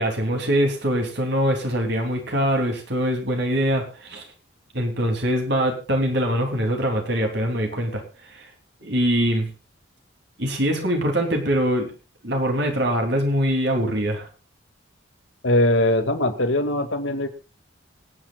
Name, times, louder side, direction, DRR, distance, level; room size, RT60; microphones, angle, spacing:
voice 1, 0.0-4.3 4.7-8.0 8.3-8.5 8.8-9.5 10.4-11.9 12.2-14.3, equal, 60° right, 3 dB, 3.1 m, -23 dB
voice 2, 15.4-17.3, left 1 dB, 75° left, 6 dB, 2.3 m, -21 dB
26.0 x 9.0 x 2.4 m, 0.30 s
head